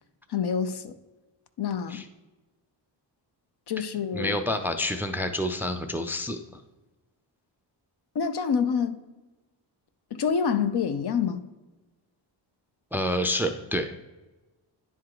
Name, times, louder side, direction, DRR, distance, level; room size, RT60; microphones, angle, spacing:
voice 1, 0.3-0.9 1.6-2.0 3.7-4.4 8.1-9.0 10.1-11.4, left 6 dB, 60° left, 0.7 m, -27 dB
voice 2, 4.1-6.4 12.9-14.0, left 1 dB, 5° right, 0.4 m, -28 dB
9.8 x 3.7 x 4.7 m
cardioid pair, 95°, 46 cm